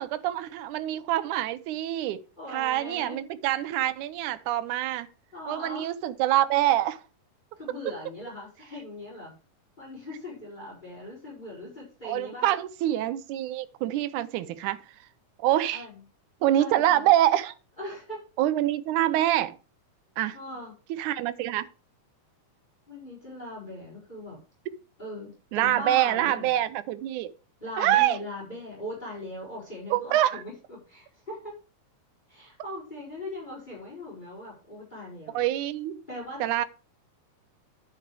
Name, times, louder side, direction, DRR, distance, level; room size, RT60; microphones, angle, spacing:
voice 1, 0.0-2.2 2.5-5.1 5.5-7.0 12.0-14.8 15.4-15.9 16.4-17.5 18.4-19.6 20.2-20.4 20.9-21.7 25.5-27.3 27.8-28.2 29.9-30.4 35.3-36.0 36.4-36.7, right 13 dB, 80° right, 2.1 m, -25 dB
voice 2, 2.4-3.2 5.3-5.9 7.6-9.3 9.8-12.5 15.7-16.0 16.6-17.1 17.8-18.2 20.3-20.7 22.9-24.4 25.0-26.5 27.6-31.6 32.3-35.4 36.1-36.7, left 1 dB, 15° left, 4.3 m, -40 dB
9.8 x 6.8 x 4.7 m
omnidirectional pair, 3.6 m